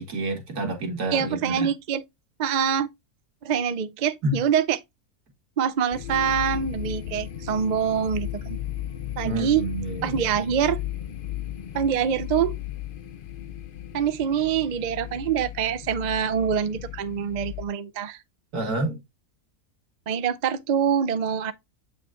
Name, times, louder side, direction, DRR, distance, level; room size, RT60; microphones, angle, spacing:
voice 1, 0.0-1.7 4.2-4.4 9.2-10.3 18.5-19.0, right 1 dB, 90° right, 2.3 m, -29 dB
voice 2, 1.1-2.0 2.4-2.9 3.4-4.8 5.6-8.6 9.2-9.7 10.0-10.8 11.7-12.5 13.9-18.2 20.1-21.5, right 8 dB, 65° right, 0.4 m, -25 dB
sound 1, 5.9-17.7, left 12 dB, 60° left, 0.5 m, -35 dB
7.8 x 5.0 x 2.4 m
omnidirectional pair, 1.6 m